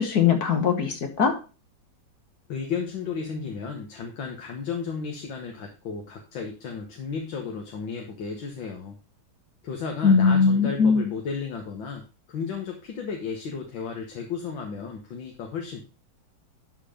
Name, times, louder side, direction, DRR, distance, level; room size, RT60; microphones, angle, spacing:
voice 1, 0.0-1.3 10.0-11.1, left 5 dB, 55° left, 6 dB, 1.6 m, -20 dB
voice 2, 2.5-9.0 9.6-12.0 12.3-15.8, left 5 dB, 75° left, 2 dB, 2.0 m, -33 dB
11.5 x 4.6 x 5.0 m, 0.34 s
omnidirectional pair, 2.1 m